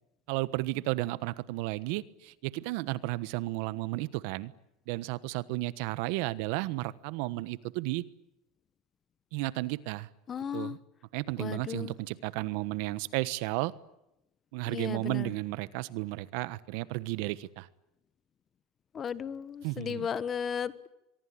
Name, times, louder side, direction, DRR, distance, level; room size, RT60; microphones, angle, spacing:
voice 1, 0.3-4.5 4.9-8.0 9.3-10.1 10.5-10.8 11.1-13.7 14.5-17.7 19.6-20.1, right 19 dB, 70° right, 17 dB, 1.2 m, -33 dB
voice 2, 10.3-10.8 11.4-11.9 14.7-15.3 18.9-20.9, left 7 dB, 30° left, 16 dB, 1.3 m, -35 dB
24.5 x 23.0 x 8.8 m, 0.88 s
supercardioid pair, 135°, 0 cm